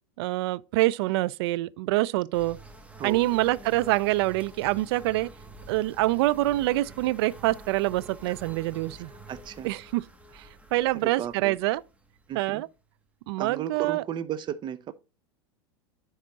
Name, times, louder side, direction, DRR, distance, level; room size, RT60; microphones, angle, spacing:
voice 1, 0.2-2.6 3.0-5.3 5.7-9.1 9.6-10.0 10.3-11.8 12.3-12.7 13.3-14.0, right 18 dB, 60° right, 0.4 m, -26 dB
sound 1, 2.3-13.0, right 2 dB, 10° right, 1.2 m, -48 dB
voice 2, 9.3-9.7 10.9-11.6 12.3-12.6 13.4-14.9, right 9 dB, 30° right, 0.7 m, -35 dB
10.0 x 3.6 x 4.1 m
hypercardioid pair, 110°, 15 cm